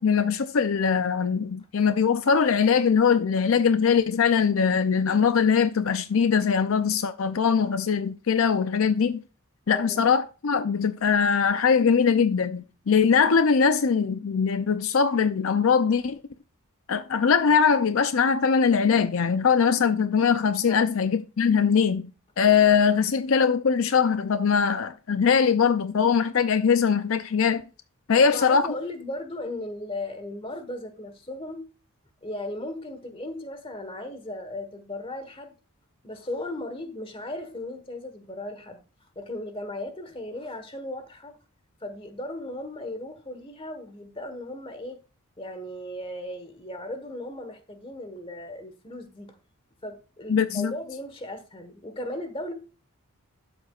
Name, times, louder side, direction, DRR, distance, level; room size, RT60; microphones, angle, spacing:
voice 1, 0.0-9.2 9.7-16.2 16.9-22.1 22.4-27.6 28.1-28.6 50.3-50.7, left 6 dB, 65° left, 0.5 m, -21 dB
voice 2, 9.7-10.0 20.7-20.8 28.1-31.7 32.2-35.5 36.0-38.8 39.1-41.4 41.8-45.0 45.4-49.4 49.8-52.5, left 1 dB, 25° left, 1.3 m, -36 dB
12.0 x 7.8 x 2.4 m
head